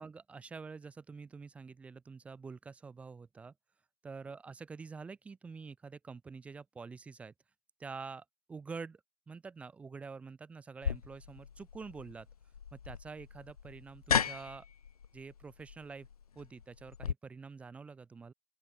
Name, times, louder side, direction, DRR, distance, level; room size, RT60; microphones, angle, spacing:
voice 1, 0.0-3.5 4.0-7.3 7.8-9.0 9.3-12.3 12.7-14.7 15.1-16.1 16.4-18.3, right 4 dB, 5° right, 1.7 m, -47 dB
sound 1, 10.8-17.1, left 7 dB, 60° left, 0.7 m, -37 dB
open air
figure-of-eight pair, 135°, 21 cm